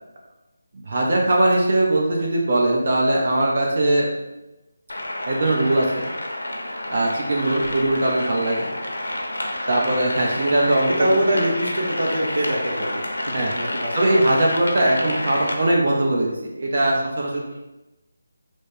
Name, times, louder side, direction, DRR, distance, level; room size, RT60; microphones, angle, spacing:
voice 1, 0.7-4.1 5.3-6.1 6.9-8.7 9.7-11.1 13.3-13.5 13.9-17.6, right 1 dB, 45° right, -2 dB, 0.7 m, -20 dB
sound 1, 4.9-15.5, left 1 dB, 75° left, 0.7 m, -29 dB
voice 2, 10.9-13.1 13.4-14.2, right 1 dB, 75° right, -1 dB, 1.0 m, -24 dB
3.1 x 2.1 x 4.2 m, 0.99 s
figure-of-eight pair, 160°, 0 cm